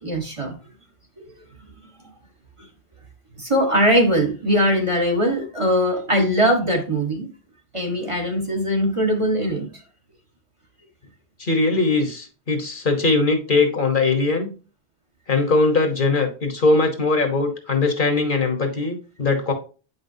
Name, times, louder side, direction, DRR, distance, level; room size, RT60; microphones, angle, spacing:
voice 1, 0.0-0.5 3.4-7.3 7.7-9.7, equal, 30° right, 2 dB, 1.3 m, -21 dB
voice 2, 11.4-14.5 15.3-19.5, left 3 dB, 55° left, 6 dB, 1.3 m, -20 dB
8.4 x 5.5 x 2.7 m, 0.35 s
omnidirectional pair, 1.1 m